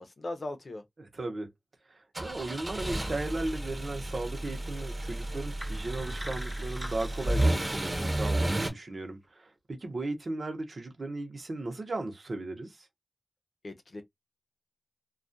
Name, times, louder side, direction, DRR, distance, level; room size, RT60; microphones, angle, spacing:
voice 1, 0.0-0.8 13.6-14.0, left 2 dB, 70° left, 0.7 m, -38 dB
voice 2, 1.0-1.5 1.9-12.9, right 2 dB, 70° right, 0.8 m, -36 dB
sound 1, 2.1-8.7, right 1 dB, 30° right, 0.8 m, -32 dB
sound 2, 5.6-8.6, right 1 dB, 10° right, 0.4 m, -44 dB
2.3 x 2.3 x 2.6 m
wide cardioid pair, 65°, 0 cm